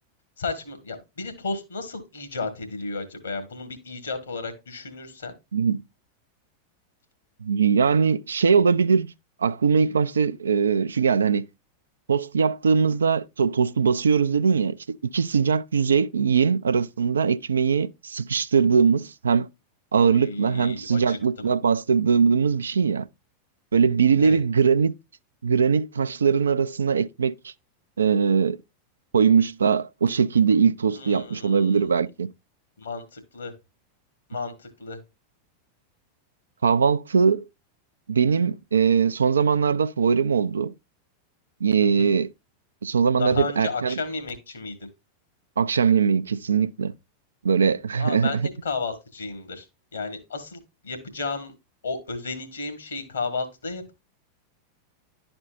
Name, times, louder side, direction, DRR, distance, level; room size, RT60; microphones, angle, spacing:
voice 1, 0.4-5.3 20.0-21.4 24.2-24.4 30.9-31.9 32.8-33.5 34.3-35.0 41.8-42.1 43.2-44.9 47.9-49.6 49.9-51.5 51.8-53.9, left 4 dB, 70° left, 1.6 m, -33 dB
voice 2, 7.4-9.1 9.4-11.4 12.1-14.8 15.0-19.5 19.9-23.1 23.7-24.9 25.4-27.5 28.0-28.6 29.1-32.3 36.6-37.5 38.1-40.7 41.6-42.3 42.8-44.0 45.6-46.9 47.4-48.3, right 6 dB, 70° right, 0.3 m, -21 dB
11.5 x 4.4 x 2.5 m
figure-of-eight pair, 90°, 0 cm